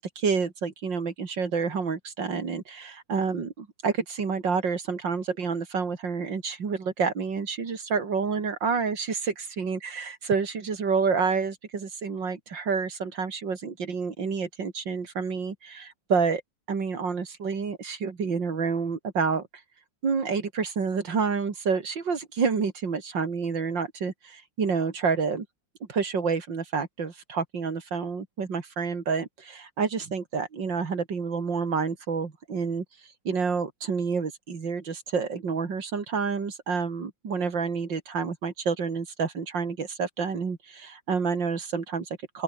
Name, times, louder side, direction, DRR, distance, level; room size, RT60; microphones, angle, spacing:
voice 1, 0.2-16.4 16.7-19.5 20.0-25.5 25.9-32.8 33.2-42.4, right 5 dB, 85° right, 3.4 m, -28 dB
open air
omnidirectional pair, 1.9 m